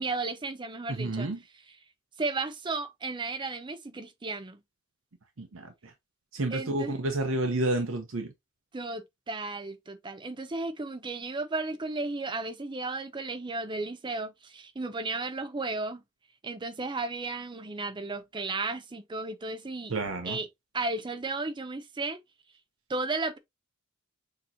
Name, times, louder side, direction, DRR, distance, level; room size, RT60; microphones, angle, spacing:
voice 1, 0.0-1.3 2.2-4.6 6.5-7.0 8.7-16.0 16.4-19.9 20.2-20.5 20.7-22.2 22.9-23.4, right 3 dB, 25° right, 0.5 m, -34 dB
voice 2, 0.9-1.4 5.4-5.9 6.3-8.3 19.9-20.4, right 2 dB, 75° right, 0.8 m, -30 dB
6.4 x 3.0 x 2.6 m
head